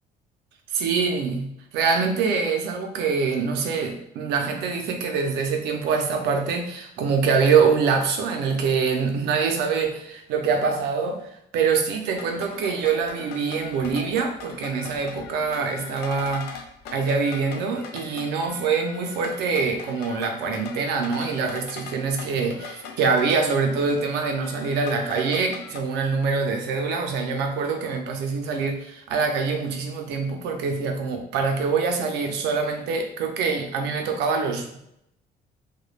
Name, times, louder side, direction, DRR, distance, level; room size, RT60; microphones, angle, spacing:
voice 1, 0.7-16.6 16.9-34.8, right 5 dB, 85° right, 4 dB, 0.6 m, -24 dB
sound 1, 12.1-25.8, left 6 dB, 85° left, 0.4 m, -40 dB
3.1 x 2.2 x 2.4 m, 0.78 s
cardioid pair, 110°, 17 cm